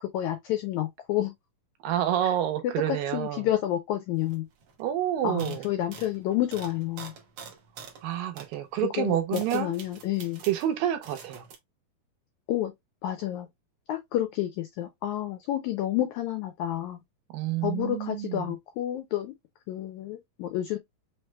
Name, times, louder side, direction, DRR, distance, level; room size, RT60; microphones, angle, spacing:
voice 1, 0.0-1.3 2.6-4.5 5.2-7.1 9.0-10.4 12.5-12.7 13.0-13.5 13.9-17.0 17.6-19.3 19.7-20.8, left 12 dB, 85° left, 1.6 m, -29 dB
voice 2, 1.8-3.5 4.8-5.7 8.0-9.8 10.5-11.4 17.3-18.6, right 12 dB, 80° right, 2.6 m, -28 dB
sound 1, 4.3-4.4 4.6-4.9 5.4-8.0 8.4-8.6 9.0-10.7 11.0-11.6, right 6 dB, 65° right, 1.4 m, -46 dB
6.0 x 3.1 x 2.2 m
omnidirectional pair, 4.0 m